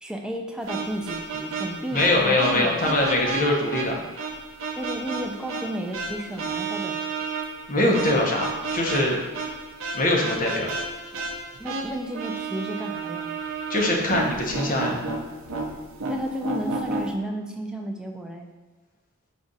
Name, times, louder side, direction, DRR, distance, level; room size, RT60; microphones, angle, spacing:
voice 1, 0.0-3.0 4.8-7.1 11.6-13.3 16.1-18.5, right 1 dB, 5° right, 2 dB, 0.3 m, -33 dB
sound 1, 0.7-17.1, right 3 dB, 65° right, 0.6 m, -32 dB
voice 2, 1.9-4.0 7.7-9.3 9.9-10.7 13.7-15.0, left 1 dB, 40° left, -1 dB, 0.8 m, -22 dB
5.0 x 2.4 x 3.9 m, 1.3 s
head